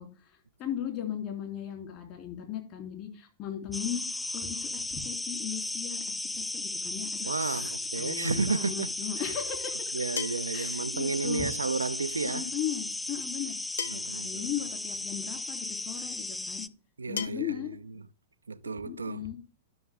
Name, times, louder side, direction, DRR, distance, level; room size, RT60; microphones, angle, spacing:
voice 1, 0.0-4.0 4.3-9.9 10.5-11.5 12.2-13.6 13.9-16.6 17.1-17.8 18.8-19.4, left 10 dB, 40° left, 2.9 m, -37 dB
sound 1, 3.7-16.7, left 2 dB, 10° left, 0.4 m, -35 dB
voice 2, 7.2-8.9 9.9-12.5 13.9-14.5 17.0-17.7 18.5-19.3, right 4 dB, 85° right, 0.4 m, -32 dB
sound 2, 10.2-10.6 12.2-12.3 13.8-14.2 15.4-15.5 17.2-17.3, left 7 dB, 75° left, 0.6 m, -35 dB
12.0 x 6.0 x 3.4 m
figure-of-eight pair, 100°, 0 cm